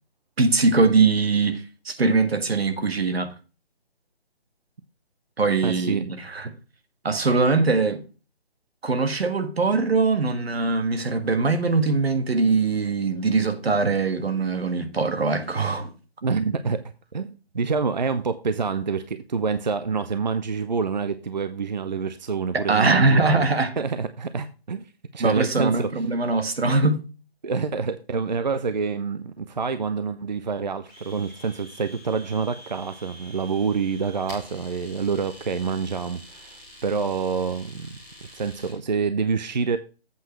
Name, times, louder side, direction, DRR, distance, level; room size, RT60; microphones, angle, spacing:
voice 1, 0.4-3.3 5.4-6.5 7.0-8.0 8.8-15.9 22.5-23.7 25.2-27.0, right 3 dB, 75° right, 1.6 m, -22 dB
voice 2, 5.6-6.1 13.8-13.9 16.2-16.8 17.1-23.5 23.8-24.8 25.1-25.9 27.4-36.6 36.8-39.8, right 5 dB, 45° right, 0.5 m, -27 dB
Domestic sounds home sounds, 30.9-38.8, equal, 5° right, 1.3 m, -46 dB
8.1 x 4.8 x 5.7 m
hypercardioid pair, 170°, 31 cm